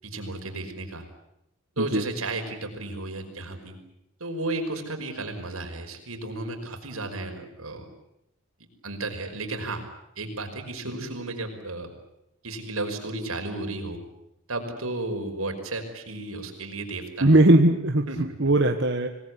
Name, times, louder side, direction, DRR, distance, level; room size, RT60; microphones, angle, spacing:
voice 1, 0.0-1.0 1.8-3.8 4.2-7.9 8.8-9.8 10.2-11.9 12.4-14.0 14.5-17.4 18.1-18.2, right 2 dB, 85° right, 4 dB, 5.5 m, -33 dB
voice 2, 17.2-19.1, right 1 dB, 55° right, 5 dB, 1.5 m, -19 dB
26.0 x 19.5 x 9.8 m, 0.83 s
head